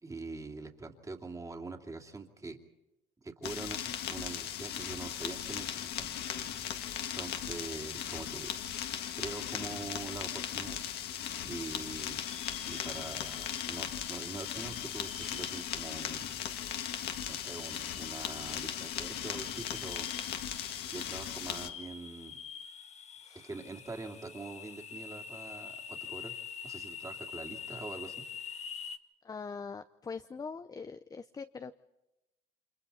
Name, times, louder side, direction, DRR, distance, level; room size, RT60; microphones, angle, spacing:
voice 1, 0.0-2.6 3.2-6.8 7.1-8.5 9.1-10.8 11.4-12.2 12.7-16.3 17.3-20.1 20.9-22.4 23.3-26.3 26.6-28.3, right 3 dB, 20° right, 3 dB, 2.8 m, -44 dB
sound 1, 3.4-21.7, left 10 dB, 75° left, 1.8 m, -38 dB
sound 2, 12.1-29.0, left 7 dB, 40° left, 1.2 m, -46 dB
voice 2, 29.2-31.8, left 5 dB, 20° left, 10 dB, 0.7 m, -42 dB
29.5 x 25.5 x 4.3 m, 0.95 s
cardioid pair, 110°, 17 cm